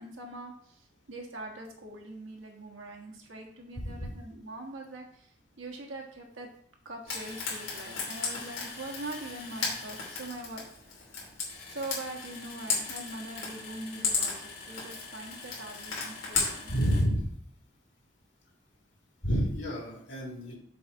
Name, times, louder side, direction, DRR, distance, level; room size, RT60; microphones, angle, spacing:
voice 1, 0.0-6.5 6.8-10.7 11.7-16.7, right 2 dB, 90° right, 1 dB, 1.4 m, -42 dB
voice 2, 3.8-4.1 16.7-17.3 19.2-20.6, equal, 65° left, -1 dB, 2.1 m, -29 dB
Frying (food), 7.1-17.0, left 4 dB, 90° left, 2.7 m, -35 dB
6.8 x 4.0 x 4.7 m, 0.67 s
head